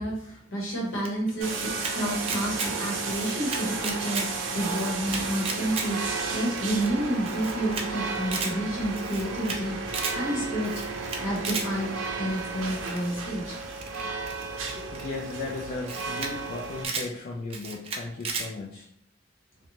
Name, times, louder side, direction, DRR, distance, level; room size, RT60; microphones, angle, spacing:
voice 1, 0.0-10.8 11.2-13.6 14.7-14.8, right 1 dB, 85° left, -2 dB, 0.9 m, -30 dB
Camera, 1.0-1.9 2.2-2.7 3.0-4.3 4.6-5.9 6.2-6.3 6.6-6.7 6.9-7.0 7.3-7.8 8.1-8.5 8.9-9.6 9.9-10.2 10.6-11.7 12.9-13.1 13.8-15.0 15.6-15.7 15.8-16.3 16.6-17.1 17.5-18.5, right 4 dB, 30° right, 0.4 m, -33 dB
sound 1, 1.4-16.9, right 4 dB, 90° right, 0.4 m, -33 dB
voice 2, 14.9-18.9, left 3 dB, 45° left, -2 dB, 0.3 m, -36 dB
2.6 x 2.1 x 2.9 m, 0.70 s
head